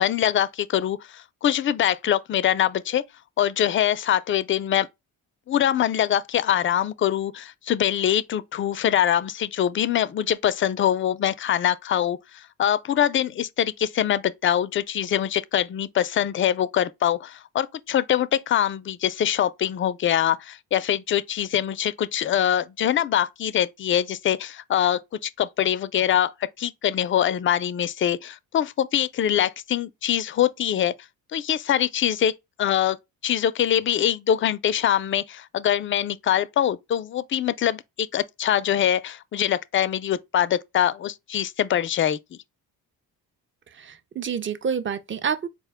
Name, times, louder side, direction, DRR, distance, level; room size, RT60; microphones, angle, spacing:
voice 1, 0.0-3.0 3.4-4.9 5.5-30.9 31.3-32.3 32.6-33.0 33.2-42.2, left 10 dB, 35° left, 0.4 m, -23 dB
voice 2, 43.7-45.5, right 7 dB, 30° right, 0.6 m, -28 dB
4.2 x 2.2 x 3.4 m
cardioid pair, 75°, 38 cm